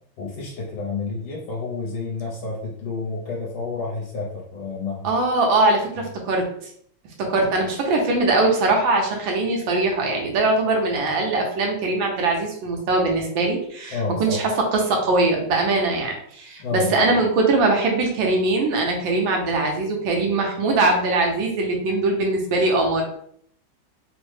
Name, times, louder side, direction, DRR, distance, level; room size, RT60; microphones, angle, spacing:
voice 1, 0.2-5.1 13.9-14.4 16.6-17.1, left 4 dB, 80° left, -3 dB, 1.5 m, -30 dB
voice 2, 5.0-6.4 7.2-23.0, right 2 dB, 80° right, 1 dB, 1.4 m, -21 dB
3.6 x 2.0 x 3.2 m, 0.65 s
omnidirectional pair, 2.2 m